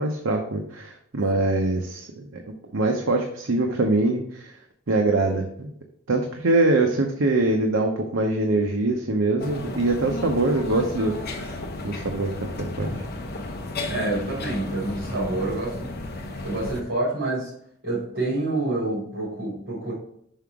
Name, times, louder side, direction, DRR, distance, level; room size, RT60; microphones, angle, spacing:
voice 1, 0.0-2.4 2.7-4.5 4.9-5.7 6.1-11.6 11.8-12.9, right 2 dB, 90° right, 2 dB, 0.8 m, -23 dB
sound 1, 9.4-16.8, left 2 dB, 55° left, 0.8 m, -33 dB
voice 2, 13.8-16.0 16.4-17.5 17.8-19.9, right 2 dB, 70° right, -8 dB, 2.9 m, -27 dB
5.8 x 5.6 x 3.6 m, 0.68 s
head